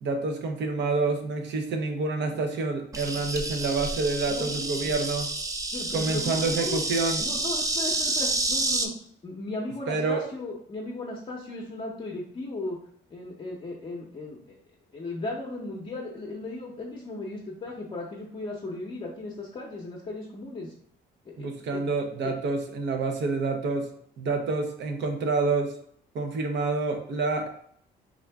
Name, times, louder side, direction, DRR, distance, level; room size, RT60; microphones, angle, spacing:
voice 1, 0.0-5.3 5.9-7.2 9.9-10.2 21.4-23.9 24.2-25.7 26.1-27.5, right 3 dB, 70° right, 5 dB, 0.7 m, -28 dB
Insect, 2.9-8.9, right 2 dB, 20° right, 0.4 m, -29 dB
voice 2, 4.3-4.9 5.7-6.8 7.2-8.9 9.2-12.8 13.1-14.6 14.9-20.7 21.3-21.8 22.2-22.3, left 2 dB, 30° left, -3 dB, 0.7 m, -36 dB
3.6 x 2.4 x 3.3 m, 0.65 s
cardioid pair, 115°, 19 cm